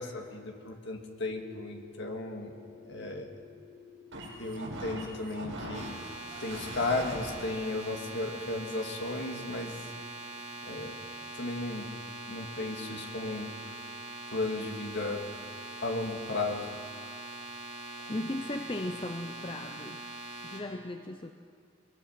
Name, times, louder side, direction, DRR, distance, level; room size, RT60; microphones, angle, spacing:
voice 1, 0.0-2.5 2.8-3.3 4.4-6.0 6.4-9.9 10.6-11.0 11.3-11.9 12.3-13.5 14.3-15.2 15.8-16.7, left 2 dB, 55° left, 3 dB, 2.1 m, -35 dB
sound 1, 1.3-7.2, right 1 dB, 60° right, 6.2 m, -44 dB
sound 2, 5.7-20.6, right 2 dB, 30° right, 3.3 m, -43 dB
voice 2, 18.1-20.1 20.4-21.3, left 1 dB, 25° left, 6 dB, 0.6 m, -36 dB
22.5 x 21.5 x 5.9 m, 2.2 s
head